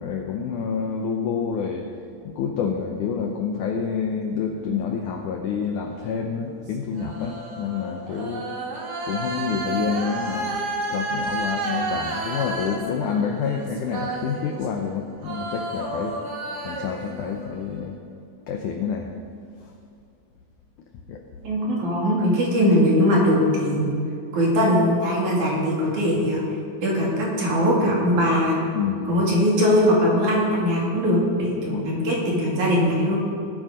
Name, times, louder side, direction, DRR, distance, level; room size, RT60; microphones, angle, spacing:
voice 1, 0.0-1.9 2.3-8.5 9.0-10.6 10.9-16.2 16.6-18.0 18.5-19.1 21.1-21.2 28.7-29.1 31.7-32.0, left 6 dB, 80° left, 3 dB, 1.8 m, -28 dB
sound 1, 6.2-14.9 15.2-17.8, right 2 dB, 80° right, 0.9 m, -31 dB
voice 2, 21.4-23.9 24.3-26.4 26.8-28.6 29.1-33.2, equal, 50° right, -3 dB, 3.7 m, -20 dB
19.0 x 9.2 x 5.1 m, 2.5 s
omnidirectional pair, 4.6 m